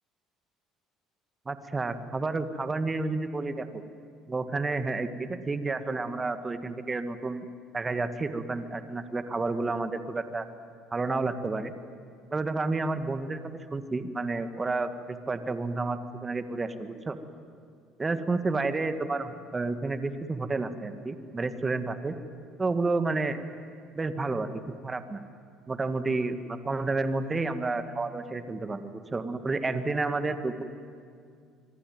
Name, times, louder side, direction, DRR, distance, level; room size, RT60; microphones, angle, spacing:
voice 1, 1.5-3.7 4.3-7.5 7.7-10.5 10.9-11.7 12.3-13.4 13.7-17.2 18.0-22.2 22.6-23.4 24.0-25.2 25.7-30.6, right 3 dB, 25° right, 9 dB, 2.0 m, -30 dB
24.5 x 24.5 x 9.4 m, 2.3 s
supercardioid pair, 70°, 0 cm